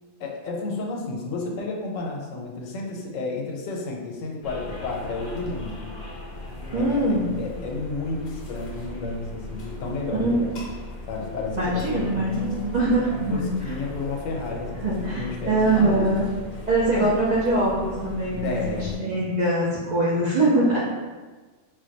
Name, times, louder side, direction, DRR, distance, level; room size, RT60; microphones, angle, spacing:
voice 1, 0.2-5.9 6.7-10.5 11.1-12.6 13.3-16.1 16.9-17.1 18.3-19.2, left 3 dB, 85° left, 0 dB, 1.0 m, -31 dB
sound 1, 4.4-19.0, left 2 dB, 50° left, 0.6 m, -38 dB
voice 2, 6.7-7.3 10.2-10.3 10.6-10.7 11.6-13.7 14.8-16.3 16.7-20.8, right 2 dB, 55° right, -8 dB, 0.5 m, -23 dB
2.4 x 2.2 x 3.9 m, 1.3 s
omnidirectional pair, 1.3 m